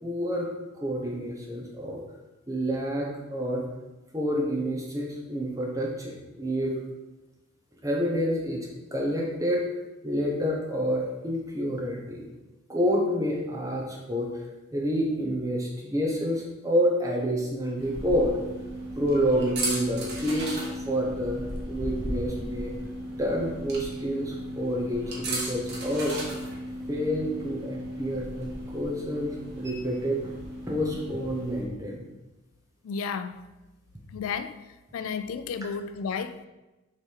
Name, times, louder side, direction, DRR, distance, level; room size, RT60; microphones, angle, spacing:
voice 1, 0.0-0.5 0.7-2.0 2.5-3.6 4.1-6.8 7.8-9.6 10.0-12.3 12.7-14.4 14.7-18.3 19.0-20.6 20.8-22.7 23.2-26.2 26.9-30.3 30.7-32.0, equal, 15° right, 1.0 m, -28 dB
sound 1, 17.8-31.7, right 1 dB, 50° right, 1.3 m, -35 dB
voice 2, 32.8-33.4 34.1-34.6 34.9-36.5, left 6 dB, 80° left, 0.3 m, -32 dB
6.5 x 3.4 x 4.6 m
head